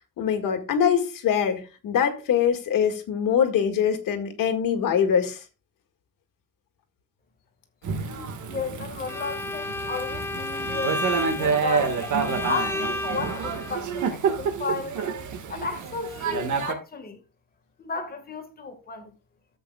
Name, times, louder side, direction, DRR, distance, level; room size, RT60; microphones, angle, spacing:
voice 1, 0.2-5.4, left 8 dB, 85° left, 1.9 m, -23 dB
Thunder / Rain, 7.8-16.7, right 5 dB, 65° right, 1.6 m, -28 dB
voice 2, 8.1-12.0 12.5-15.0 15.5-17.2 17.8-19.1, left 4 dB, 30° left, 1.6 m, -34 dB
Bowed string instrument, 9.1-13.8, left 2 dB, 10° left, 0.4 m, -32 dB
13.5 x 7.9 x 2.3 m
cardioid pair, 165°, 32 cm